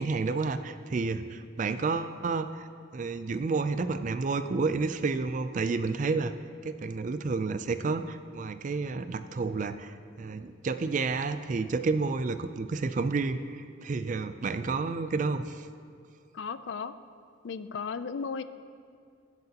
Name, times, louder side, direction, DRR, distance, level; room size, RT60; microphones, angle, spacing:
voice 1, 0.0-2.7 2.9-6.3 6.6-15.7, right 4 dB, 40° right, 11 dB, 0.3 m, -30 dB
voice 2, 16.3-16.9 17.4-18.4, left 5 dB, 60° left, 13 dB, 0.4 m, -35 dB
18.5 x 7.9 x 2.9 m, 2.2 s
head